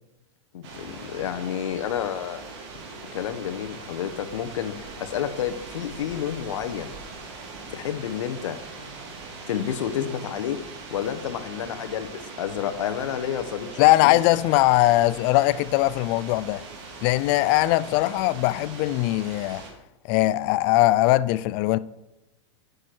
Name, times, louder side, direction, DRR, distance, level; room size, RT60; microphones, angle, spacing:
voice 1, 0.5-2.4 3.1-6.9 7.7-8.6 9.5-10.6 10.9-14.1, left 9 dB, 85° left, 1.1 m, -30 dB
sound 1, 0.6-19.7, right 3 dB, 65° right, 3.0 m, -41 dB
voice 2, 13.8-16.6 17.0-19.6 20.1-21.8, left 17 dB, 45° left, 0.4 m, -20 dB
9.7 x 6.6 x 4.5 m
supercardioid pair, 135°, 16 cm